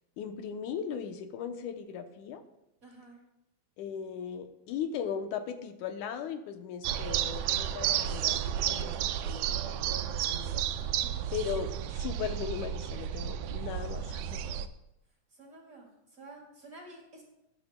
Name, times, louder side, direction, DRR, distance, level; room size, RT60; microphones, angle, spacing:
voice 1, 0.2-2.4 3.8-10.6 11.3-14.4, left 7 dB, 85° left, 7 dB, 2.3 m, -38 dB
voice 2, 2.8-3.2 10.7-11.2 15.3-17.2, right 2 dB, 30° right, -2 dB, 2.8 m, -51 dB
sound 1, 6.8-14.7, right 10 dB, 80° right, 1.7 m, -32 dB
19.0 x 10.0 x 2.2 m, 0.90 s
omnidirectional pair, 3.4 m